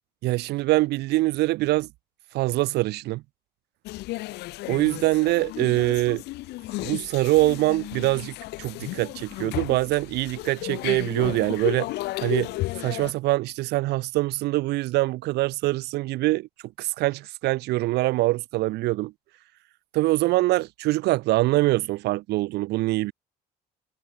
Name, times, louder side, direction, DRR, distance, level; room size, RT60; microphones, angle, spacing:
voice 1, 0.2-1.9 2.3-3.2 4.7-6.2 6.8-11.9 12.2-12.5 12.8-16.5 16.8-19.1 19.9-23.1, right 19 dB, 80° right, 0.7 m, -24 dB
sound 1, 3.9-13.1, left 19 dB, 80° left, 0.7 m, -34 dB
cardioid pair, 110°, 17 cm